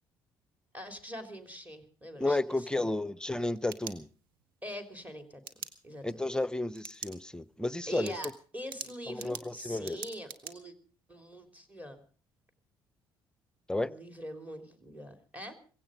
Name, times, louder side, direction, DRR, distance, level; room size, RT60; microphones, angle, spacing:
voice 1, 0.7-2.9 4.6-5.4 5.8-6.3 7.9-10.7 11.1-12.0 13.7-15.5, equal, 15° right, 3.4 m, -43 dB
voice 2, 2.2-4.1 6.0-8.1 9.1-10.0 13.7-13.9, left 2 dB, 5° left, 0.7 m, -32 dB
sound 1, 3.3-4.5 5.4-5.7 6.7-7.2 7.5-7.6 8.0-10.5, right 8 dB, 85° right, 1.0 m, -43 dB
17.0 x 16.0 x 5.1 m
hypercardioid pair, 55°, 11 cm